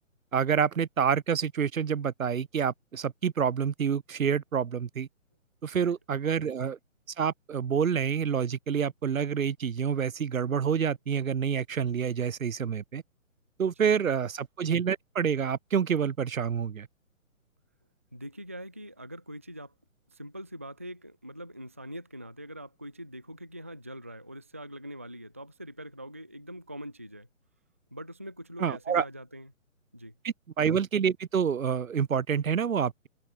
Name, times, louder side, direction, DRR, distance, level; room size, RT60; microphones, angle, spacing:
voice 1, 0.3-5.1 5.6-6.8 7.2-13.0 13.6-16.9 28.6-29.0 30.2-33.1, right 7 dB, 80° right, 1.1 m, -28 dB
voice 2, 18.1-19.7 20.1-27.3 27.9-29.5 29.9-30.1, equal, 10° right, 0.4 m, -43 dB
hypercardioid pair, 145°, 40 cm